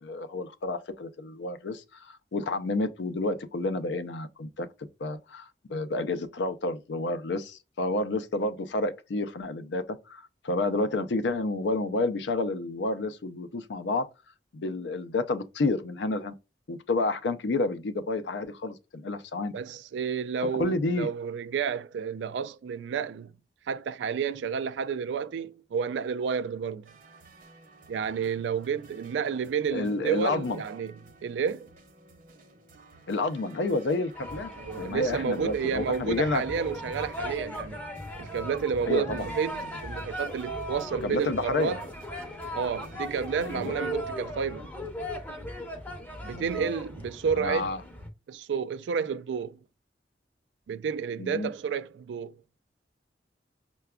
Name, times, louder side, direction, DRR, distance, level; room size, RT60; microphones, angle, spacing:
voice 1, 0.0-4.7 5.0-14.1 14.5-16.3 16.7-19.5 20.5-21.1 29.7-30.6 33.1-36.4 38.9-39.3 41.0-41.7 43.4-43.7 46.3-46.7 47.4-47.8 51.2-51.5, left 2 dB, 75° left, 0.5 m, -30 dB
voice 2, 19.5-23.3 23.7-26.9 27.9-30.9 31.2-31.7 34.6-37.8 38.2-41.8 42.5-44.7 46.2-47.7 48.3-49.6 50.7-52.4, right 6 dB, 80° right, 0.3 m, -31 dB
sound 1, 26.8-43.8, right 3 dB, 50° right, 0.8 m, -54 dB
sound 2, 34.1-48.1, equal, 10° left, 0.6 m, -38 dB
5.7 x 2.2 x 2.2 m
head